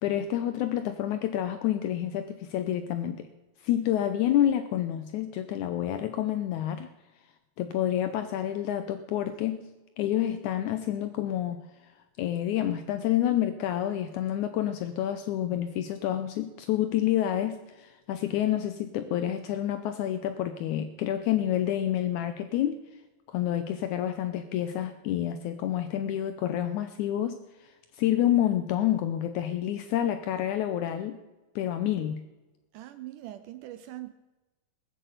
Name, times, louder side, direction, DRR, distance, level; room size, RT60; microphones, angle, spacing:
voice 1, 0.0-3.3 3.6-6.9 7.6-9.7 10.0-11.9 12.2-22.8 23.3-31.2 31.6-32.2, left 11 dB, 80° left, 9 dB, 1.8 m, -28 dB
voice 2, 32.7-34.1, right 14 dB, 80° right, 12 dB, 2.0 m, -42 dB
20.0 x 7.8 x 8.1 m, 1.1 s
omnidirectional pair, 4.1 m